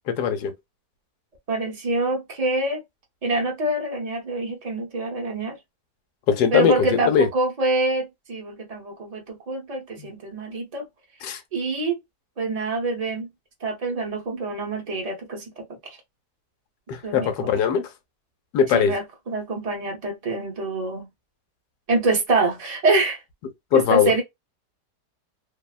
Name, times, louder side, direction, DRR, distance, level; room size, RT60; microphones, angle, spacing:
voice 1, 0.1-0.5 6.3-7.3 10.0-10.1 11.2-11.4 16.9-17.9 18.5-19.0 23.7-24.1, left 8 dB, 80° left, 1.2 m, -20 dB
voice 2, 1.5-2.8 3.2-5.6 6.5-10.9 11.5-12.0 12.4-13.3 13.6-16.0 17.0-17.3 18.7-21.1 21.9-23.2 23.9-24.2, right 2 dB, 55° right, 0.4 m, -25 dB
3.0 x 2.1 x 2.3 m
omnidirectional pair, 1.8 m